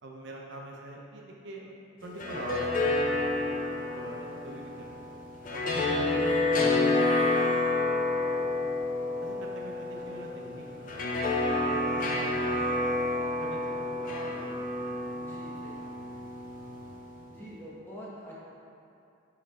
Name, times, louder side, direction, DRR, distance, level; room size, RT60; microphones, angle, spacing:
voice 1, 0.0-5.0 5.5-8.7 9.2-15.1, right 1 dB, 55° right, -2 dB, 0.6 m, -44 dB
sound 1, 2.0-17.2, left 2 dB, 40° left, 0.6 m, -29 dB
voice 2, 14.1-14.4 15.1-16.1 17.3-18.4, equal, 10° left, -7 dB, 1.0 m, -46 dB
5.8 x 3.3 x 5.4 m, 2.6 s
head